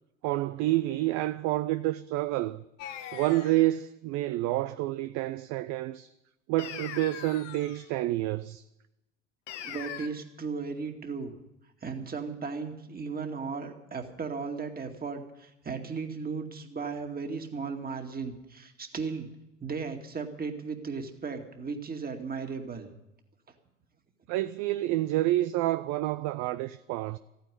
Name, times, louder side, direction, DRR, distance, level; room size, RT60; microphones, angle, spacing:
voice 1, 0.2-2.6 3.1-6.1 6.5-8.6 24.3-27.2, right 16 dB, 50° right, 0.6 m, -28 dB
sound 1, 2.8-3.7 6.6-7.9 9.5-10.1, left 10 dB, 70° left, 1.4 m, -41 dB
voice 2, 9.6-11.3 11.8-19.3 19.6-22.9, right 5 dB, 25° right, 2.3 m, -36 dB
14.5 x 9.4 x 9.9 m
hypercardioid pair, 70°, 37 cm